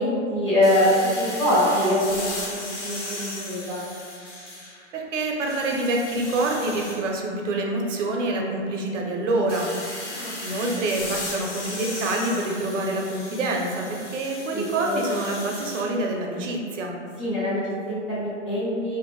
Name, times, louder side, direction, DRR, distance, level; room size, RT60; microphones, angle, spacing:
voice 1, 0.0-2.5 2.8-3.8 10.1-10.4 14.5-15.0 17.2-19.0, left 1 dB, 25° left, -12 dB, 0.5 m, -24 dB
sound 1, 0.6-4.9 5.3-7.0 9.5-15.9, left 2 dB, 65° left, 0.9 m, -36 dB
voice 2, 4.9-9.7 10.4-16.9, right 2 dB, 75° right, 0 dB, 0.6 m, -26 dB
2.4 x 2.1 x 3.0 m, 2.2 s
hypercardioid pair, 175°, 37 cm